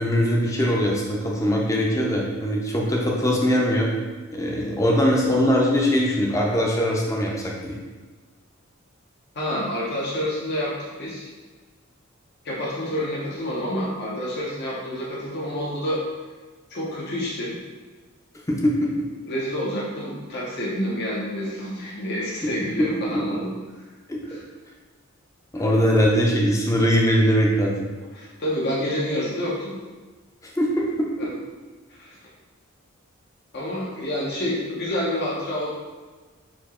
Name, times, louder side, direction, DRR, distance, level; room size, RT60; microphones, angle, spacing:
voice 1, 0.0-3.9 4.3-7.8 18.6-18.9 23.1-23.4 24.1-24.2 25.5-27.9 30.6-31.1, equal, 15° left, -2 dB, 0.7 m, -21 dB
voice 2, 9.3-11.3 12.4-16.0 16.7-17.5 19.2-23.5 24.2-24.4 25.5-25.6 28.1-29.7 31.2-31.3 31.9-32.2 33.5-35.7, equal, 55° left, -6 dB, 0.9 m, -28 dB
4.3 x 2.9 x 4.3 m, 1.3 s
head